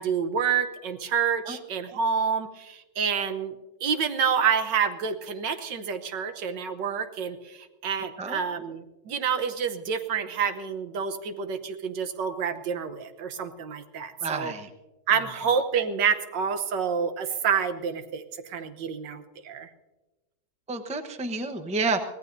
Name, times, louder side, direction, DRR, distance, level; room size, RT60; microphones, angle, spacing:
voice 1, 0.0-3.6 3.8-14.5 15.1-19.7, right 7 dB, 80° right, 9 dB, 1.7 m, -28 dB
voice 2, 14.2-14.7 20.7-22.0, right 3 dB, 5° right, 7 dB, 0.6 m, -29 dB
24.5 x 17.0 x 2.7 m, 1.1 s
omnidirectional pair, 1.9 m